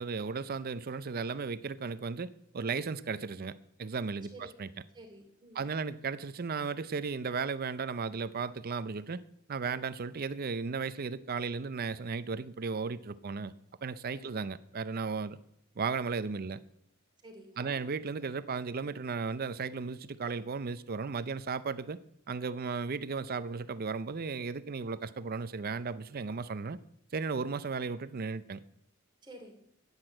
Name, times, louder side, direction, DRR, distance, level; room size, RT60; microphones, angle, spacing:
voice 1, 0.0-4.3 4.6-4.7 5.6-9.2 9.5-13.5 13.8-15.4 15.8-16.6 17.6-22.0 22.3-26.8 27.1-28.6, right 5 dB, 45° right, 0.5 m, -35 dB
voice 2, 4.9-5.7 14.1-14.4 17.2-17.8 29.2-29.5, right 1 dB, 20° right, 2.9 m, -51 dB
10.5 x 9.7 x 7.7 m
head